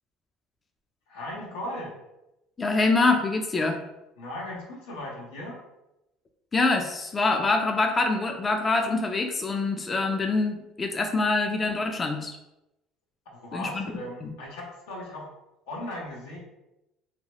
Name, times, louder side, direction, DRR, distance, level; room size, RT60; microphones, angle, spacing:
voice 1, 1.1-1.9 4.2-5.6 13.3-15.3 15.7-16.4, left 1 dB, 85° left, -2 dB, 0.9 m, -37 dB
voice 2, 2.6-3.8 6.5-12.4 13.5-13.9 14.2-14.3, left 3 dB, 25° left, 4 dB, 0.3 m, -25 dB
2.8 x 2.2 x 2.9 m, 0.92 s
supercardioid pair, 90°, 0 cm